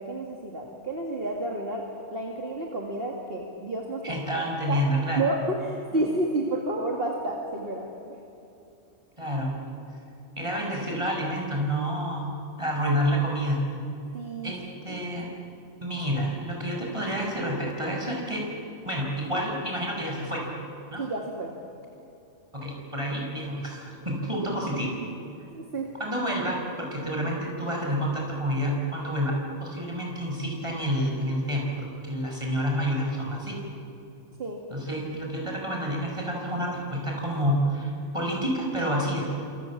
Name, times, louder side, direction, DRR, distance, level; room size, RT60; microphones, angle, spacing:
voice 1, 0.0-1.8 2.1-4.8 5.2-8.2 14.1-14.5 14.9-15.0 21.0-21.5 25.5-25.9 34.4-34.6, right 2 dB, 45° right, 0 dB, 2.6 m, -30 dB
voice 2, 4.0-5.3 5.9-6.0 9.2-9.5 10.4-13.6 14.4-15.3 15.8-18.5 18.8-20.5 20.9-21.0 22.5-25.0 26.0-33.6 34.7-39.3, equal, 20° right, -1 dB, 6.2 m, -29 dB
30.0 x 27.0 x 7.5 m, 2.9 s
omnidirectional pair, 1.4 m